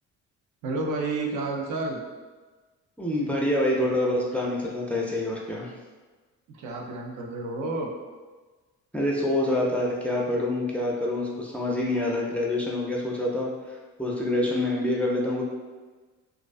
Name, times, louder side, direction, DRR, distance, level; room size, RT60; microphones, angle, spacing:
voice 1, 0.6-2.0 6.5-7.9, right 3 dB, 80° right, 0 dB, 0.5 m, -30 dB
voice 2, 3.0-5.7 8.9-15.4, left 1 dB, 5° left, -3 dB, 0.4 m, -26 dB
2.4 x 2.2 x 2.4 m, 1.3 s
cardioid pair, 90°, 30 cm